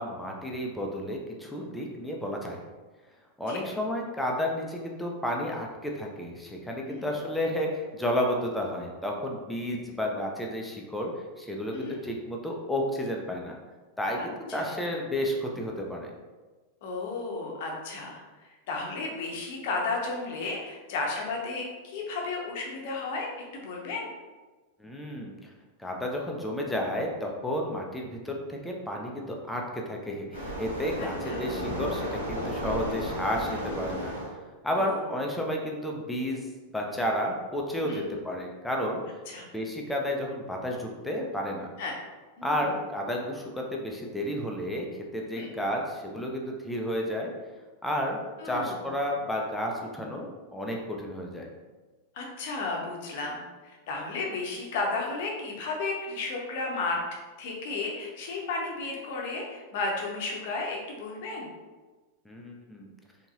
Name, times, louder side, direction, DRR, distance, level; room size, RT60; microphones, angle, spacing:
voice 1, 0.0-2.6 3.4-11.1 11.4-13.6 14.0-16.1 24.8-25.5 25.8-34.1 34.6-36.4 36.7-39.0 39.5-41.7 42.4-44.9 45.1-47.3 47.8-48.2 48.4-51.5 62.3-62.9, equal, 5° left, -1 dB, 0.5 m, -31 dB
voice 2, 14.2-14.8 16.8-18.2 18.7-24.1 31.3-31.5 34.7-35.1 37.8-38.0 39.3-39.5 41.8-41.9 42.4-42.7 45.3-45.5 48.4-48.8 52.1-57.0 57.4-61.5, left 3 dB, 50° left, -1 dB, 0.7 m, -33 dB
Waves surf, 30.3-34.3, equal, 90° right, 1.1 m, -33 dB
4.0 x 2.8 x 2.3 m, 1.3 s
figure-of-eight pair, 90°, 0 cm